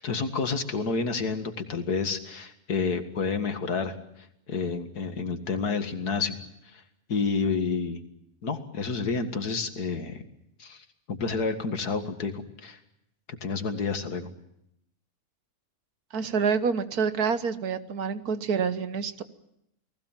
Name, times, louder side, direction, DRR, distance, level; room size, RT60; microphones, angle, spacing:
voice 1, 0.0-3.9 4.5-6.4 6.7-6.8 7.1-8.0 8.4-10.2 10.6-12.8 13.4-14.3, left 4 dB, 80° left, 8 dB, 2.4 m, -29 dB
voice 2, 16.1-19.2, right 6 dB, 75° right, 12 dB, 1.7 m, -27 dB
29.5 x 19.0 x 7.4 m, 0.79 s
omnidirectional pair, 1.6 m